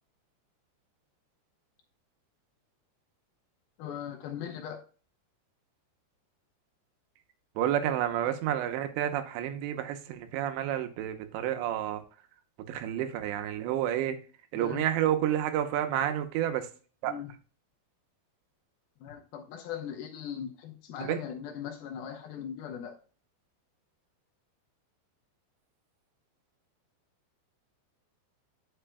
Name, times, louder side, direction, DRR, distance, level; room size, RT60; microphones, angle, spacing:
voice 1, 3.8-4.8 14.6-14.9 17.1-17.3 19.0-23.0, left 8 dB, 75° left, 3 dB, 2.5 m, -39 dB
voice 2, 7.6-12.0 12.7-14.2 14.5-16.7 17.0-17.1 21.0-21.2, right 11 dB, 85° right, 7 dB, 3.1 m, -30 dB
10.0 x 6.0 x 2.2 m, 0.37 s
omnidirectional pair, 5.1 m